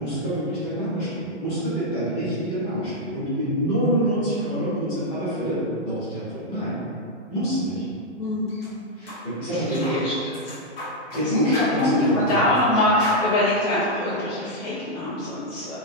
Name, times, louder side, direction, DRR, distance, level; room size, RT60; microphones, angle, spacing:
voice 1, 0.0-6.8 7.3-7.8 8.9-10.0 11.1-12.4, equal, 10° left, -14 dB, 0.6 m, -26 dB
voice 2, 8.2-8.6 9.5-10.1 11.2-15.8, left 1 dB, 80° left, -14 dB, 1.2 m, -24 dB
sound 1, 8.5-8.7 9.1-9.2 9.7-10.0 10.3-11.2 11.5-12.7 13.0-13.2, left 1 dB, 55° left, 1.3 m, -33 dB
3.0 x 2.6 x 2.6 m, 2.5 s
hypercardioid pair, 160°, 36 cm